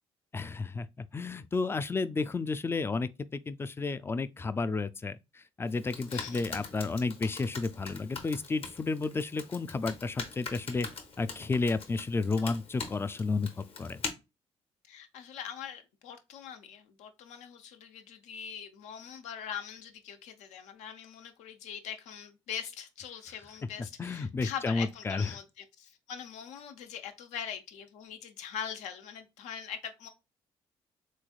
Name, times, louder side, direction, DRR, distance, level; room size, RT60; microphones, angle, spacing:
voice 1, 0.3-10.9 11.2-14.0 24.0-25.3, left 3 dB, 20° left, 0.3 m, -32 dB
Computer keyboard, 5.7-14.1, left 4 dB, 55° left, 0.9 m, -43 dB
voice 2, 6.1-6.4 14.9-30.1, left 8 dB, 80° left, 0.6 m, -42 dB
3.4 x 3.2 x 2.3 m
supercardioid pair, 65°, 12 cm